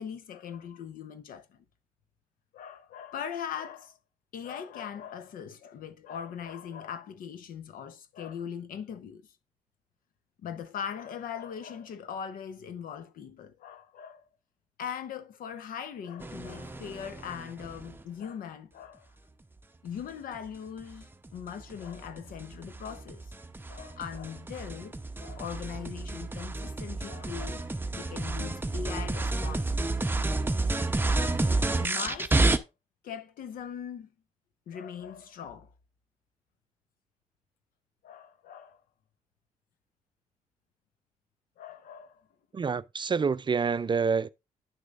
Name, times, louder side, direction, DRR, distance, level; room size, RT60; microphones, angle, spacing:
voice 1, 0.0-1.6 2.5-4.0 4.3-9.2 10.4-14.2 14.8-19.1 19.8-23.3 23.7-30.0 31.8-32.6 33.0-34.1 34.7-35.7 38.0-38.8 41.6-42.2, left 8 dB, 85° left, 0.9 m, -40 dB
sound 1, 16.2-18.0 20.8-32.6, right 2 dB, 15° right, 0.8 m, -30 dB
voice 2, 42.5-44.3, right 5 dB, 35° right, 0.4 m, -27 dB
10.5 x 6.4 x 2.5 m
cardioid pair, 65°, 14 cm